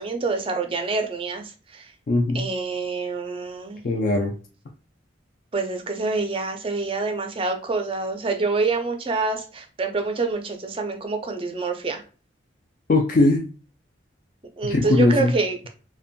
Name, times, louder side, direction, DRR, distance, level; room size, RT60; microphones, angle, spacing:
voice 1, 0.0-1.4 1.7-1.8 2.3-3.8 5.5-12.0 14.6-15.7, right 3 dB, 30° right, 5 dB, 0.4 m, -26 dB
voice 2, 2.1-2.5 3.8-4.3 12.9-13.4 14.6-15.3, left 2 dB, 45° left, 1 dB, 0.4 m, -20 dB
2.5 x 2.2 x 2.5 m, 0.35 s
head